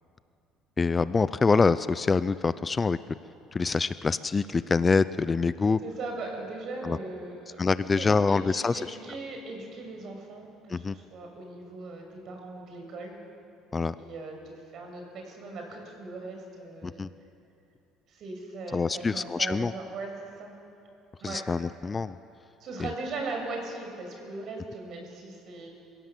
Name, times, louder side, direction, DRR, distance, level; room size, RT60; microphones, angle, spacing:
voice 1, 0.8-3.0 3.5-5.8 6.8-7.0 7.6-8.8 10.7-11.0 13.7-13.9 16.8-17.1 18.7-19.7 21.2-22.1 22.8-22.9, left 4 dB, 25° left, 15 dB, 0.5 m, -25 dB
voice 2, 5.8-7.6 7.9-13.2 14.0-17.0 18.1-20.5 21.2-21.4 22.6-25.7, right 3 dB, 55° right, 2 dB, 6.5 m, -39 dB
28.5 x 17.0 x 7.5 m, 2.7 s
cardioid pair, 105°, 0 cm